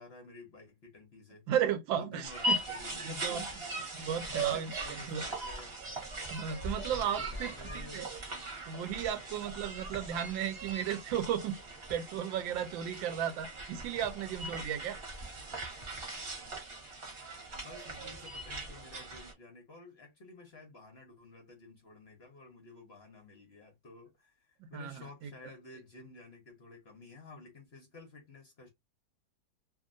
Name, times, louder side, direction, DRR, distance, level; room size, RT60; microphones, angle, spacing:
voice 1, 0.0-1.5 1.9-5.8 6.7-8.0 16.3-16.4 17.5-28.7, left 3 dB, 55° left, 0.7 m, -52 dB
voice 2, 1.5-2.6 3.0-3.5 3.9-4.7 5.1-5.3 6.3-8.1 8.7-11.6 11.9-15.0 24.6-25.3, right 9 dB, 85° right, 1.3 m, -34 dB
sound 1, 2.2-19.3, right 2 dB, 40° right, 1.1 m, -40 dB
2.8 x 2.7 x 2.5 m
omnidirectional pair, 2.0 m